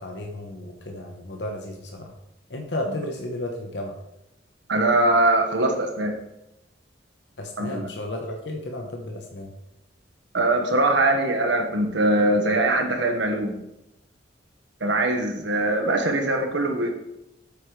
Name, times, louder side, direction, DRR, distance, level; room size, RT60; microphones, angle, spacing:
voice 1, 0.0-2.1 2.5-4.0 7.4-9.5, left 1 dB, 70° left, 2 dB, 1.1 m, -33 dB
voice 2, 4.7-6.1 7.6-7.9 10.3-13.6 14.8-16.9, right 2 dB, 90° right, 3 dB, 1.5 m, -22 dB
8.5 x 8.1 x 3.3 m, 0.86 s
head